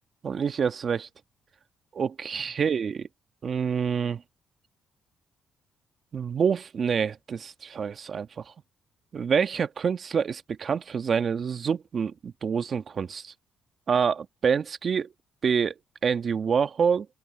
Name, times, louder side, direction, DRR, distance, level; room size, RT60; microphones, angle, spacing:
voice 1, 0.2-1.1 1.9-3.1 3.4-4.2 6.1-8.4 9.1-13.3 13.9-15.1 15.4-15.7 16.0-17.1, right 6 dB, 50° right, 1.3 m, -27 dB
open air
cardioid pair, 90°, 0 cm